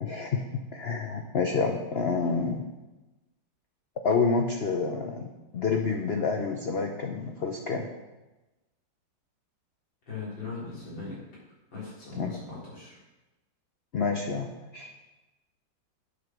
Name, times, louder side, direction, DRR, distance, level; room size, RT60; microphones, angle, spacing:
voice 1, 0.0-2.7 4.0-7.9 12.1-12.3 13.9-14.9, left 4 dB, 60° left, 3 dB, 0.6 m, -28 dB
voice 2, 10.1-11.2 11.7-13.0, left 4 dB, 80° left, -7 dB, 4.8 m, -38 dB
9.7 x 7.5 x 6.1 m, 1.1 s
omnidirectional pair, 2.1 m